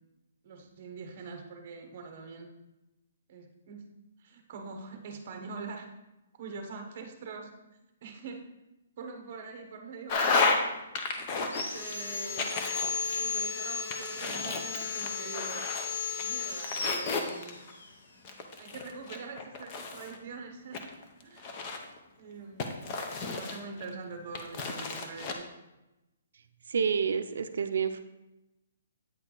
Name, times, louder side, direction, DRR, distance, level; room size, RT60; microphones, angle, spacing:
voice 1, 0.4-2.5 3.3-3.8 4.2-5.9 6.4-7.5 8.0-8.4 9.0-10.6 11.5-12.6 13.2-15.6 16.2-17.6 18.6-20.8 21.2-21.6 22.2-22.9 23.2-25.5, right 4 dB, 30° right, 5 dB, 0.9 m, -44 dB
sound 1, 10.1-10.6 10.9-11.9 12.4-13.5 13.9-15.9 16.2-17.7 18.2-20.2 20.7-22.0 22.6-23.9 24.3-25.3, left 4 dB, 25° left, 0.6 m, -32 dB
Sawing, 11.4-17.9, left 5 dB, 70° left, 1.1 m, -35 dB
voice 2, 26.7-28.0, right 6 dB, 65° right, 9 dB, 0.5 m, -28 dB
8.7 x 4.5 x 3.8 m, 0.98 s
hypercardioid pair, 175°, 0 cm